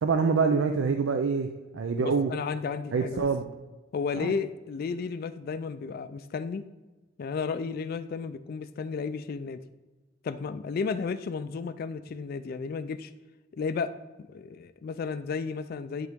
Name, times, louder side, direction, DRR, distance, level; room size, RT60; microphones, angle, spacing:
voice 1, 0.0-2.3 2.9-3.5 4.1-4.3, right 5 dB, 80° right, 6 dB, 0.4 m, -26 dB
voice 2, 2.0-3.3 3.9-6.6 7.2-9.6 10.2-13.1 13.5-13.9 14.2-16.1, left 5 dB, 50° left, 11 dB, 0.3 m, -33 dB
11.0 x 3.8 x 3.5 m, 1.2 s
head